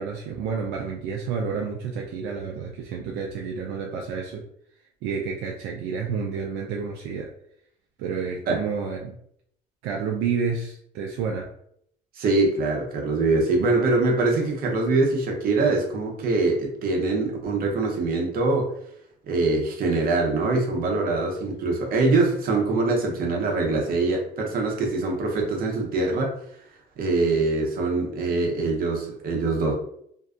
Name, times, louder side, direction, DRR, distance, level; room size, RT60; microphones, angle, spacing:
voice 1, 0.0-4.4 5.0-7.3 8.0-9.2 9.8-11.5, right 5 dB, 85° right, 0 dB, 0.4 m, -30 dB
voice 2, 12.2-18.7 19.3-26.3 27.0-29.7, right 3 dB, 60° right, 1 dB, 0.8 m, -23 dB
2.6 x 2.2 x 2.4 m, 0.68 s
cardioid pair, 110°, 17 cm